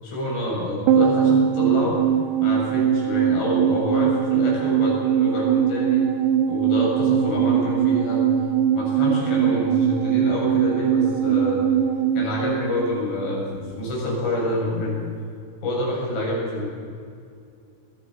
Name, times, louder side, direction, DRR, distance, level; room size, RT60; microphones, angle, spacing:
voice 1, 0.0-2.0 2.4-6.0 6.5-8.2 8.7-11.6 12.1-15.0 15.6-16.7, left 1 dB, 70° left, -4 dB, 10.0 m, -27 dB
sound 1, 0.9-13.4 13.6-13.7, right 9 dB, 70° right, 3.2 m, -21 dB
25.0 x 21.5 x 5.9 m, 2.4 s
omnidirectional pair, 5.7 m